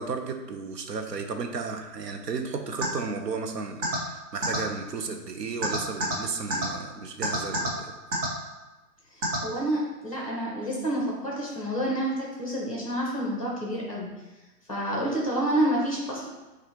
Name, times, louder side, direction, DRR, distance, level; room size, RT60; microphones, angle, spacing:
voice 1, 0.0-7.9, right 4 dB, 75° right, 5 dB, 0.7 m, -34 dB
sound 1, 2.8-2.9 3.8-4.0 4.4-4.6 5.6-6.1 6.5-6.6 7.2-7.7 8.1-8.3 9.2-9.4, right 1 dB, 50° right, 1.2 m, -26 dB
voice 2, 9.1-14.1 14.7-16.3, right 1 dB, 20° left, -2 dB, 0.5 m, -28 dB
5.6 x 2.5 x 2.9 m, 1.1 s
hypercardioid pair, 165°, 49 cm